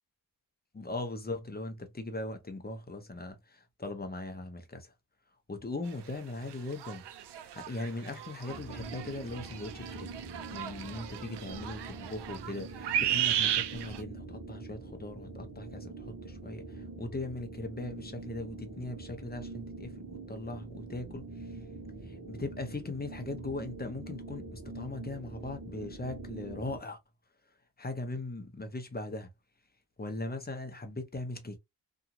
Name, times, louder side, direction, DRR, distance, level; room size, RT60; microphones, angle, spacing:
voice 1, 0.7-4.9 5.5-7.0 7.4-10.1 10.5-21.3 22.1-27.0 27.8-29.3 30.0-31.6, left 2 dB, 25° left, 0.8 m, -39 dB
sound 1, 6.1-6.2 6.5-14.0, right 10 dB, 90° right, 0.5 m, -34 dB
sound 2, 8.5-26.8, right 3 dB, 40° right, 1.1 m, -44 dB
2.8 x 2.5 x 2.4 m
cardioid pair, 80°, 40 cm